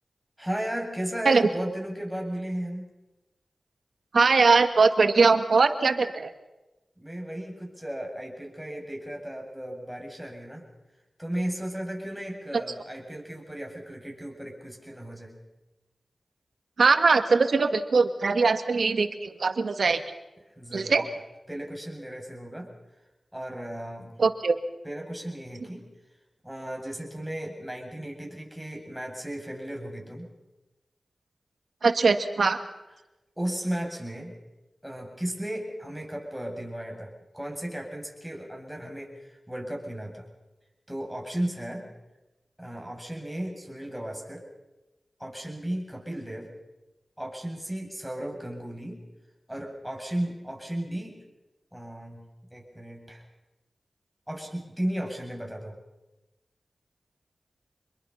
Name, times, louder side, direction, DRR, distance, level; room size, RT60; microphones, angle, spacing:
voice 1, 0.4-2.9 7.0-10.7 11.2-15.4 20.6-21.1 21.5-22.7 23.3-24.2 24.8-25.8 26.4-30.3 33.4-34.3 34.8-40.3 40.9-41.9 42.6-44.5 45.2-46.5 47.2-49.0 49.5-51.2 51.7-53.2 54.3-55.7, right 1 dB, 5° right, 0 dB, 7.5 m, -35 dB
voice 2, 4.1-6.3 16.8-20.0 20.7-21.0 24.2-24.6 31.8-32.6, right 4 dB, 75° right, 9 dB, 1.7 m, -21 dB
27.0 x 21.5 x 5.8 m, 1.0 s
cardioid pair, 45°, 0 cm